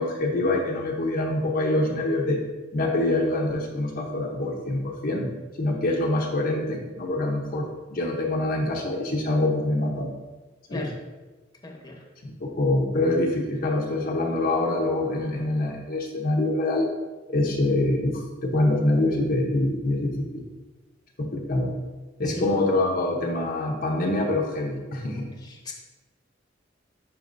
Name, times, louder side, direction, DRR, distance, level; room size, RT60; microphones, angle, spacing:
voice 1, 0.0-2.4 2.7-5.3 5.6-10.1 10.7-10.9 12.2-16.9 17.3-20.4 21.2-21.7 22.2-25.3, left 2 dB, 50° left, -1 dB, 0.8 m, -25 dB
voice 2, 11.6-11.9 22.2-22.5 25.4-25.7, left 2 dB, 20° left, 0 dB, 1.0 m, -36 dB
11.0 x 4.1 x 2.6 m, 1.2 s
head